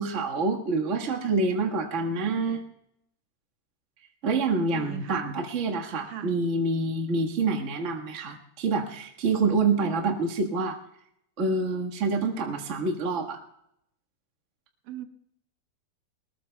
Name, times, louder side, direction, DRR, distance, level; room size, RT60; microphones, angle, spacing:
voice 1, 0.0-2.6 4.2-10.8 11.4-13.4, right 3 dB, 35° right, 1 dB, 1.1 m, -27 dB
voice 2, 4.7-5.3 6.1-6.3 14.9-15.1, right 10 dB, 80° right, 8 dB, 2.5 m, -38 dB
22.0 x 20.0 x 2.3 m, 0.76 s
omnidirectional pair, 3.7 m